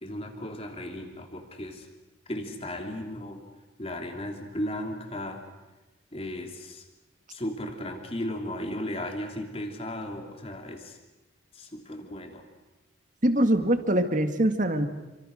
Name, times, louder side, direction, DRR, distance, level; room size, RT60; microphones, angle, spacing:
voice 1, 0.0-1.9 2.3-3.4 3.8-5.4 6.1-6.8 7.3-11.0 11.5-12.4, left 1 dB, 30° left, 4 dB, 3.0 m, -35 dB
voice 2, 13.2-14.9, right 1 dB, 40° right, 8 dB, 1.9 m, -23 dB
29.0 x 25.0 x 6.5 m, 1.1 s
head